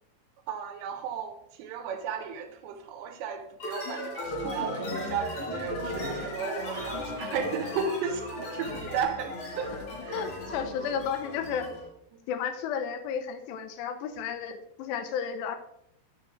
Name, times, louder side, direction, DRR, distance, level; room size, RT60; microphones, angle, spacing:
voice 1, 0.5-10.2 12.1-12.2, right 6 dB, 90° right, 6 dB, 3.1 m, -34 dB
sound 1, 3.6-11.9, left 1 dB, 45° left, 4.4 m, -36 dB
voice 2, 10.1-11.7 12.3-15.6, left 7 dB, 85° left, 8 dB, 2.9 m, -33 dB
11.0 x 5.9 x 3.2 m, 0.76 s
omnidirectional pair, 4.9 m